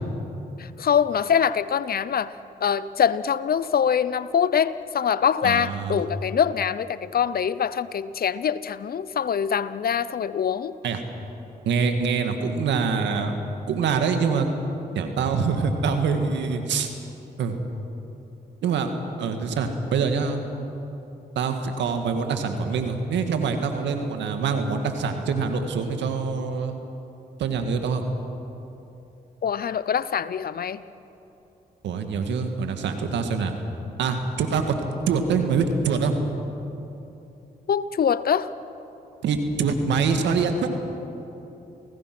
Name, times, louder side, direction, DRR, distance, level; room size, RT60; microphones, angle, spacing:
voice 1, 0.6-2.3 2.6-10.8 29.4-30.8 37.7-38.5, left 8 dB, 55° left, 16 dB, 0.8 m, -24 dB
voice 2, 5.4-6.0 10.8-11.0 11.7-13.3 13.7-14.5 14.9-16.9 17.4-17.6 18.6-18.9 19.2-20.4 21.4-26.8 27.4-28.0 31.8-33.5 34.0-34.8 35.1-36.2 39.2-40.8, right 5 dB, 85° right, 6 dB, 2.0 m, -25 dB
28.5 x 18.5 x 6.1 m, 3.0 s
supercardioid pair, 55°, 18 cm